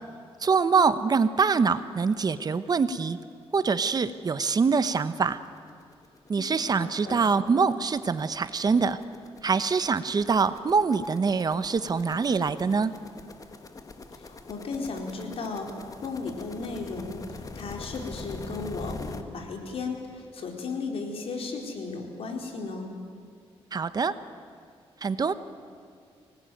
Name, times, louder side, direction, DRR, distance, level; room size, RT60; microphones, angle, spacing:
voice 1, 0.4-3.2 3.5-5.4 6.3-9.0 9.4-12.9 23.7-24.1 25.0-25.3, right 5 dB, 40° right, 13 dB, 1.0 m, -24 dB
sound 1, 4.3-4.4 4.6-19.2, left 3 dB, 35° left, 1.7 m, -44 dB
voice 2, 6.4-7.2 14.2-22.9, left 4 dB, 65° left, 2 dB, 4.2 m, -35 dB
25.0 x 19.0 x 9.2 m, 2.2 s
cardioid pair, 100°, 10 cm